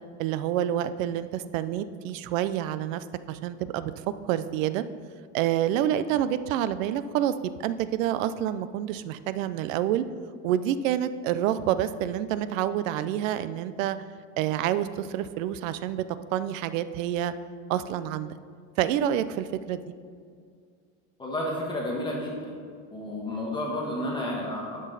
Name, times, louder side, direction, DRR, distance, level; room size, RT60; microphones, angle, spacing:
voice 1, 0.2-3.9 4.2-4.8 5.3-10.0 10.4-14.0 14.4-16.0 16.3-17.3 17.7-18.4 18.8-19.8, right 11 dB, 70° right, 13 dB, 0.6 m, -28 dB
voice 2, 21.2-22.6 22.9-24.8, left 1 dB, 10° left, -3 dB, 1.3 m, -31 dB
11.5 x 6.2 x 4.0 m, 2.2 s
supercardioid pair, 155°, 40 cm